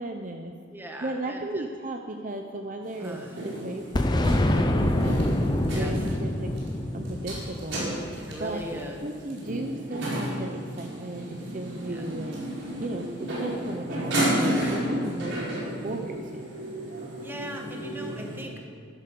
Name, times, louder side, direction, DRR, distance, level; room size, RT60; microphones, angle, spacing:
voice 1, 0.0-0.6 1.0-5.2 5.7-6.5 6.9-8.0 8.4-8.7 9.0-16.5, right 2 dB, 40° right, 4 dB, 0.7 m, -35 dB
voice 2, 0.7-1.7 3.0-3.3 5.7-5.9 8.3-9.0 11.9-12.0 15.1-15.5 17.2-18.5, equal, 10° right, 1 dB, 1.6 m, -39 dB
sound 1, 2.8-18.4, right 1 dB, 75° right, 4.7 m, -33 dB
Boom, 3.9-8.6, left 1 dB, 20° left, 0.7 m, -26 dB
12.5 x 12.5 x 6.9 m, 2.3 s
head